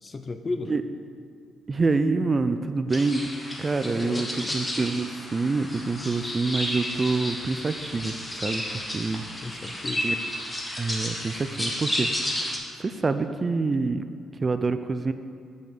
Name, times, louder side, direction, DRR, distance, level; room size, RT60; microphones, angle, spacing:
voice 1, 0.0-0.7 3.9-4.6 9.4-10.1, left 3 dB, 30° left, 8 dB, 0.6 m, -34 dB
voice 2, 1.7-3.2 3.6-4.3 4.5-9.2 10.0-10.1 10.8-12.1 12.8-14.0 14.4-15.1, right 3 dB, 30° right, 10 dB, 0.3 m, -26 dB
sound 1, 2.9-12.6, left 1 dB, 15° left, 1.3 m, -32 dB
6.1 x 5.4 x 6.7 m, 2.4 s
cardioid pair, 90°, 0 cm